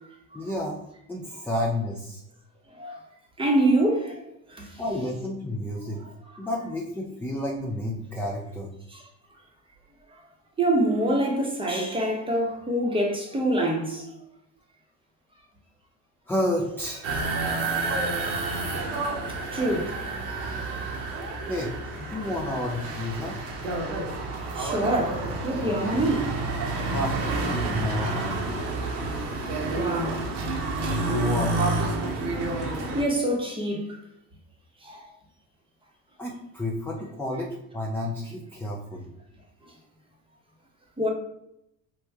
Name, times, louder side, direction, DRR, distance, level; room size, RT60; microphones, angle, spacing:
voice 1, 0.3-2.2 4.8-6.0 6.4-8.7 16.3-17.1 21.5-23.4 26.9-27.3 27.6-28.5 31.1-31.6 36.2-39.0, left 1 dB, 5° left, 0.4 m, -31 dB
voice 2, 3.4-4.2 4.5-4.7 8.9-9.0 10.6-14.0 19.5-19.9 24.6-26.3 29.7-30.2 32.9-33.8 34.8-35.0 41.0-41.1, right 1 dB, 10° right, 0.9 m, -25 dB
sound 1, 17.0-33.0, right 2 dB, 75° right, 1.0 m, -29 dB
3.1 x 2.2 x 3.4 m
supercardioid pair, 90°, 42 cm